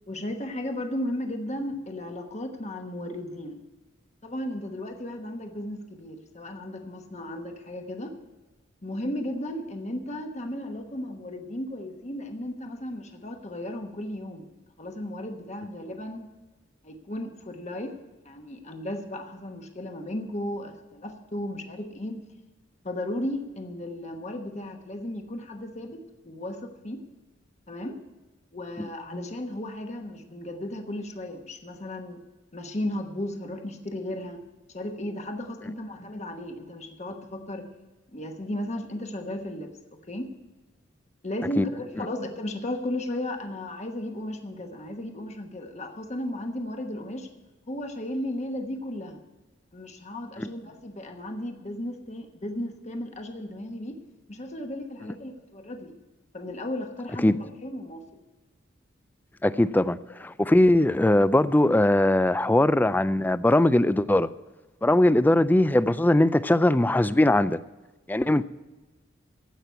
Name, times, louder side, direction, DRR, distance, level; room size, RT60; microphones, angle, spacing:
voice 1, 0.1-3.6 4.2-8.1 8.8-14.5 14.8-16.3 16.8-18.0 18.2-22.2 22.8-27.1 27.7-28.0 28.5-32.2 32.5-34.4 34.7-37.7 38.1-40.3 41.2-47.3 47.7-49.2 49.7-54.0 54.3-56.0 56.3-58.0, left 1 dB, 35° left, 5 dB, 1.1 m, -35 dB
voice 2, 59.4-64.3 64.8-67.6 68.1-68.4, left 1 dB, 10° left, 15 dB, 0.3 m, -20 dB
15.5 x 6.0 x 9.1 m, 1.1 s
head